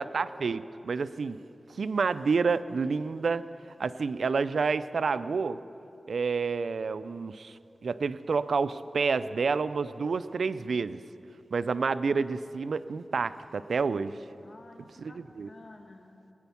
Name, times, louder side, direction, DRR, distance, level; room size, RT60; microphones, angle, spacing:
voice 1, 0.0-1.4 1.7-3.4 3.8-5.6 6.1-11.0 11.5-14.2 15.0-15.5, right 4 dB, 80° right, 14 dB, 0.4 m, -29 dB
voice 2, 14.4-16.3, left 2 dB, 60° left, 2 dB, 2.0 m, -52 dB
21.0 x 9.0 x 7.0 m, 2.7 s
cardioid pair, 60°, 0 cm